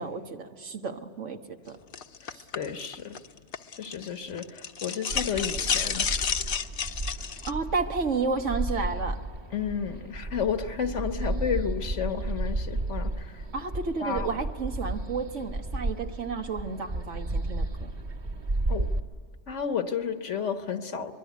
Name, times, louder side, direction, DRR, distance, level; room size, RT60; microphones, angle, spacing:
voice 1, 0.0-1.8 2.3-2.4 7.4-9.2 13.5-17.9, right 4 dB, 85° right, 5 dB, 1.7 m, -32 dB
sound 1, 1.9-4.1 4.4-7.5, left 6 dB, 55° left, 0.9 m, -30 dB
voice 2, 2.2-3.2 3.8-6.1 9.5-13.4 14.0-14.3 18.7-18.9 19.5-21.1, left 7 dB, 80° left, 8 dB, 1.6 m, -32 dB
sound 2, 5.1-19.0, right 2 dB, 50° right, 1.9 m, -33 dB
24.0 x 23.0 x 9.3 m, 2.2 s
omnidirectional pair, 1.2 m